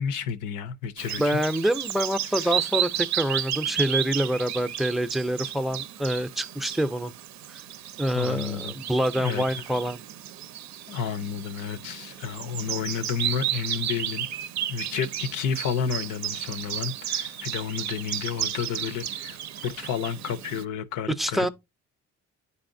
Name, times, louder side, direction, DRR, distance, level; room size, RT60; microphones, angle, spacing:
voice 1, 0.0-1.4 2.2-2.6 8.1-8.7 9.1-9.6 10.9-14.3 14.7-21.5, left 7 dB, 85° left, 0.7 m, -31 dB
Bird vocalization bird call bird song, 1.0-20.6, right 11 dB, 65° right, 0.5 m, -33 dB
voice 2, 1.2-7.1 7.5-7.6 8.0-10.0 21.2-21.5, right 1 dB, ahead, 0.5 m, -26 dB
9.7 x 4.1 x 2.6 m
cardioid pair, 90°, 30 cm